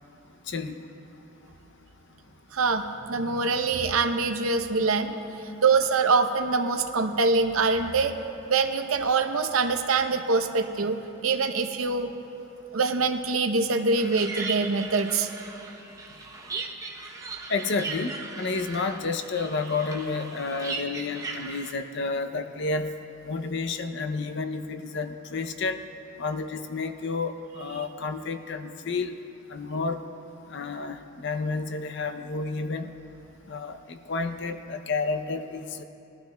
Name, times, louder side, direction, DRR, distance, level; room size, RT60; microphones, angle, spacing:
voice 1, 2.5-5.2 5.6-8.2 8.5-12.1 12.7-15.3, right 4 dB, 75° right, 6 dB, 0.7 m, -24 dB
sound 1, 13.9-21.7, right 4 dB, 15° right, 0.8 m, -37 dB
voice 2, 17.5-22.9 23.2-25.8 26.2-29.2 29.5-30.0 30.5-32.9 33.5-35.8, left 4 dB, 55° left, 8 dB, 0.6 m, -30 dB
21.0 x 12.0 x 2.3 m, 2.9 s
head